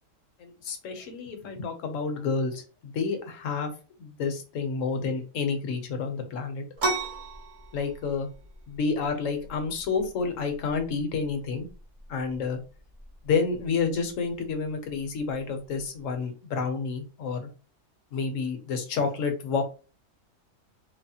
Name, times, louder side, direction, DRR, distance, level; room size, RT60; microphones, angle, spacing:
voice 1, 0.4-3.7 4.0-6.6 7.7-8.3 8.7-11.7 12.1-12.6 13.2-17.5 18.1-19.6, left 5 dB, 75° left, 6 dB, 1.1 m, -29 dB
sound 1, 6.8-16.2, right 3 dB, 45° right, 0.7 m, -39 dB
3.2 x 2.1 x 2.7 m, 0.34 s
omnidirectional pair, 1.4 m